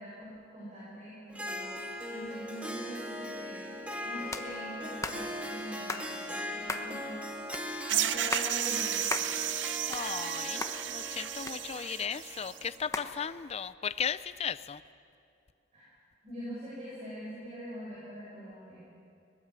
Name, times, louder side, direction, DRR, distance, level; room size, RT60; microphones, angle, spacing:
voice 1, 0.0-3.7 4.0-7.2 7.9-9.3 15.7-15.9 16.2-18.8, equal, 35° right, -8 dB, 7.1 m, -43 dB
Harp, 1.3-13.2, equal, 5° right, 1.7 m, -40 dB
sound 1, 4.3-4.5 5.0-5.2 5.9-6.1 6.7-6.9 7.5-7.7 8.1-8.5 9.1-9.3 9.7-10.3 10.6-10.8 11.5-12.0 12.9-13.1, left 3 dB, 15° left, 1.1 m, -35 dB
sound 2, 7.9-12.6, right 11 dB, 75° right, 0.7 m, -33 dB
voice 2, 9.9-10.6 10.9-14.8, left 7 dB, 35° left, 14 dB, 0.5 m, -36 dB
22.5 x 19.5 x 7.5 m, 2.5 s
head